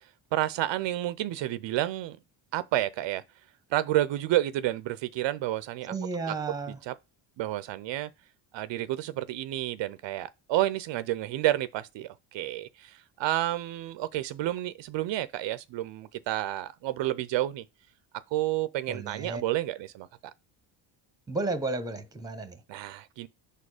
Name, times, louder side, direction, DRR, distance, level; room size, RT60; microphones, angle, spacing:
voice 1, 0.3-2.2 2.5-3.2 3.7-5.9 6.3-6.4 6.7-6.9 7.4-8.1 8.5-17.7 18.3-20.3 22.7-23.3, right 14 dB, 65° right, 0.5 m, -30 dB
voice 2, 5.9-6.8 18.9-19.4 21.3-22.6, right 3 dB, 10° right, 0.9 m, -33 dB
5.2 x 4.3 x 4.8 m
cardioid pair, 115°, 48 cm